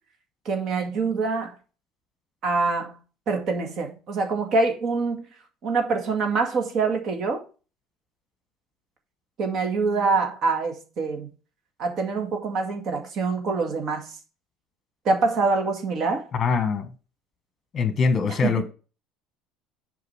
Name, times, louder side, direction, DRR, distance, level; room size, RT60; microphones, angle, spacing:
voice 1, 0.5-1.6 2.4-3.0 3.3-5.3 5.6-7.4 9.4-11.3 11.8-14.1 15.0-16.3 18.3-18.6, right 4 dB, 45° right, 2.1 m, -25 dB
voice 2, 16.3-16.9 17.7-18.6, left 5 dB, 30° left, 1.3 m, -23 dB
7.9 x 5.0 x 5.6 m
cardioid pair, 140°, 0 cm